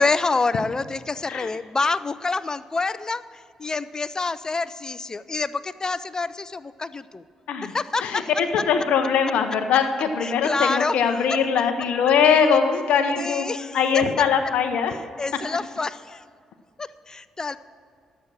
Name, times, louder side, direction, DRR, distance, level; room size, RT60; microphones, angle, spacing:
voice 1, 0.0-7.2 7.6-8.3 10.2-11.4 13.2-14.0 15.2-16.2 16.8-17.6, left 3 dB, 30° left, 15 dB, 0.5 m, -27 dB
voice 2, 8.0-14.9, left 6 dB, 70° left, 6 dB, 0.7 m, -21 dB
11.0 x 7.8 x 6.1 m, 2.2 s
hypercardioid pair, 45°, 2 cm